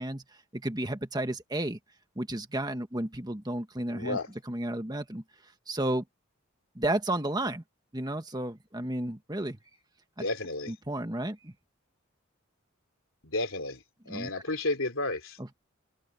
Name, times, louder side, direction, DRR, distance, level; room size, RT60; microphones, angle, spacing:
voice 1, 0.0-1.8 2.1-4.2 4.5-6.0 6.7-7.6 7.9-9.6 10.2-10.3 10.7-11.5 14.1-14.3 15.4-15.5, right 1 dB, 20° right, 1.6 m, -32 dB
voice 2, 3.9-4.3 10.2-10.7 13.2-15.4, left 2 dB, 75° left, 3.3 m, -32 dB
head